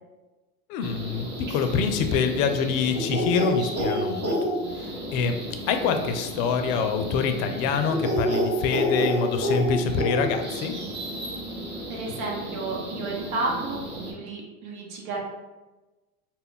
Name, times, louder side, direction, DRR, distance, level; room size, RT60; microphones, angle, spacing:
voice 1, 0.7-4.3 4.8-5.4 5.7-10.7, left 5 dB, 55° left, 7 dB, 0.5 m, -25 dB
sound 1, 0.8-14.1, equal, 25° right, 0.6 m, -30 dB
voice 2, 11.9-15.2, right 3 dB, 75° right, -1 dB, 0.8 m, -32 dB
2.3 x 2.1 x 3.6 m, 1.1 s
hypercardioid pair, 90°, 43 cm